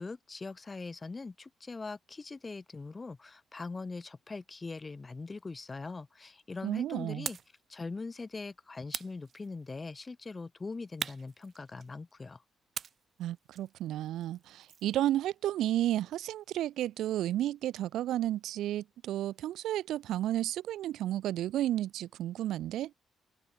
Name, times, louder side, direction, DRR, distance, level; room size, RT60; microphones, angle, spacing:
voice 1, 0.0-7.4 7.7-12.4, left 3 dB, 20° left, 2.3 m, -42 dB
voice 2, 6.6-7.3 13.2-22.9, right 13 dB, 90° right, 2.3 m, -32 dB
sound 1, 7.3-7.6 8.9-9.8 11.0-12.1 12.7-15.0, right 7 dB, 40° right, 1.4 m, -42 dB
cardioid pair, 155°, 0 cm